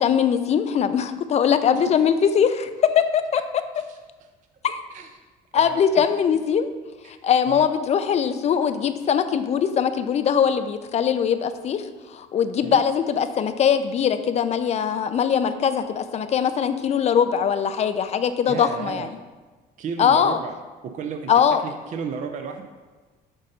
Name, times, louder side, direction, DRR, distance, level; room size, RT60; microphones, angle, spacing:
voice 1, 0.0-3.4 4.6-4.9 5.5-6.7 7.1-19.1 20.0-20.4 21.3-21.6, left 8 dB, 40° left, 10 dB, 0.4 m, -21 dB
voice 2, 5.5-6.1 7.5-7.7 12.6-12.8 18.5-19.1 19.8-20.6 20.9-21.3 21.6-22.6, right 6 dB, 50° right, 5 dB, 0.5 m, -33 dB
7.5 x 2.6 x 5.4 m, 1.3 s
cardioid pair, 110°, 17 cm